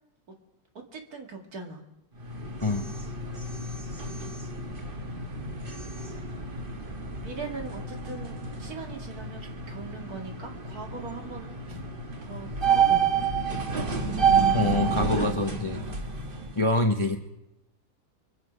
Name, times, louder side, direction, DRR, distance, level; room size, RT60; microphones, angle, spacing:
voice 1, 0.9-1.8 7.2-11.6 12.2-13.3, right 4 dB, 70° right, 3 dB, 2.5 m, -40 dB
sound 1, 2.1-16.6, right 6 dB, 35° right, 1.3 m, -29 dB
voice 2, 14.5-15.8 16.6-17.2, left 2 dB, 30° left, 5 dB, 0.5 m, -25 dB
24.5 x 9.8 x 5.0 m, 0.93 s
omnidirectional pair, 1.6 m